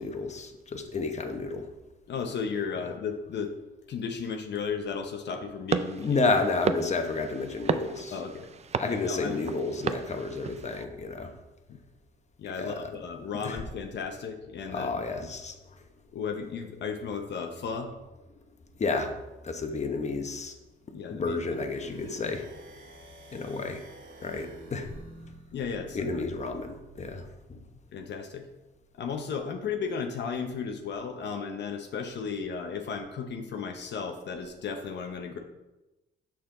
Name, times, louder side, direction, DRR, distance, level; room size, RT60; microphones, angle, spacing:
voice 1, 0.0-1.7 6.0-8.1 8.8-11.3 12.6-12.9 13.4-13.6 14.7-15.6 18.8-19.1 19.4-20.5 21.1-22.5 23.3-23.8 24.2-24.9 25.9-27.6, left 3 dB, 35° left, 5 dB, 1.0 m, -31 dB
voice 2, 2.1-3.5 3.9-6.2 8.1-8.5 8.8-9.4 12.4-15.3 16.1-17.9 20.9-21.4 21.9-22.0 25.5-26.1 27.9-28.4 29.0-35.4, left 6 dB, 60° left, 4 dB, 0.8 m, -34 dB
sound 1, 5.7-10.8, right 6 dB, 35° right, 0.4 m, -34 dB
sound 2, 21.3-27.2, right 3 dB, 75° right, 1.4 m, -50 dB
6.4 x 5.9 x 3.8 m, 1.1 s
cardioid pair, 90°, 20 cm